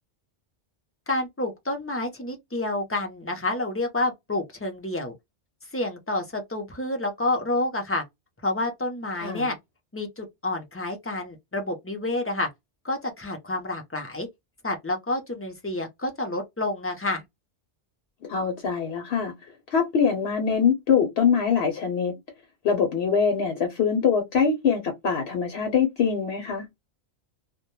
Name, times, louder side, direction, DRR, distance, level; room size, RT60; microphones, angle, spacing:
voice 1, 1.1-5.1 5.7-8.0 8.4-9.6 9.9-12.5 12.8-14.3 14.6-17.2, left 2 dB, 20° left, 0.4 m, -29 dB
voice 2, 18.3-19.3 19.7-22.1 22.6-26.7, left 6 dB, 70° left, 0.9 m, -23 dB
2.2 x 2.1 x 3.0 m
omnidirectional pair, 1.1 m